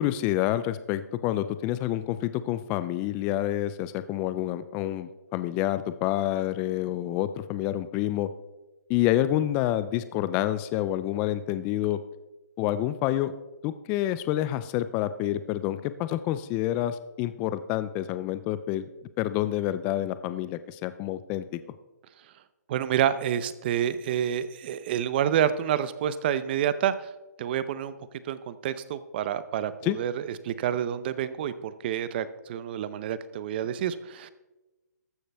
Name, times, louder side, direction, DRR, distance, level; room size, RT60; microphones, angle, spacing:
voice 1, 0.0-8.3 8.9-12.0 12.6-13.3 13.6-18.9 19.2-21.4 29.8-30.0, left 13 dB, 15° left, 13 dB, 0.3 m, -28 dB
voice 2, 22.7-27.1 27.4-27.9 28.2-34.3, right 10 dB, 35° right, 14 dB, 0.6 m, -28 dB
14.5 x 11.0 x 3.4 m, 1.1 s
hypercardioid pair, 155°, 10 cm